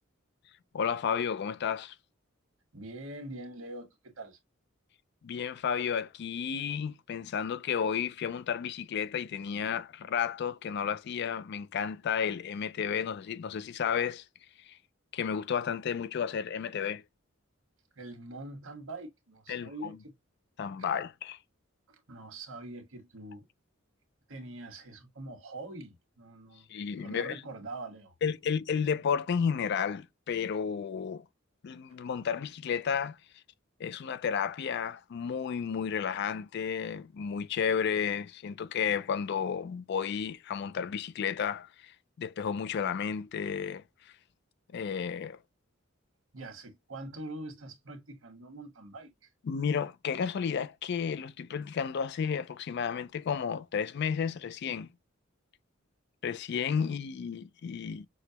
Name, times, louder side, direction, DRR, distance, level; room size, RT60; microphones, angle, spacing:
voice 1, 0.7-1.9 5.2-14.2 14.7-14.8 15.1-17.0 19.5-19.9 20.6-21.4 26.7-27.4 28.2-31.2 31.6-33.2 33.8-41.9 42.2-43.8 44.7-45.4 49.5-54.9 56.2-58.1, left 7 dB, 55° left, 0.3 m, -32 dB
voice 2, 2.7-4.4 17.9-20.1 20.8-20.9 21.9-23.4 24.3-28.1 46.3-49.3, right 2 dB, 90° right, 1.4 m, -44 dB
6.2 x 2.1 x 2.8 m
head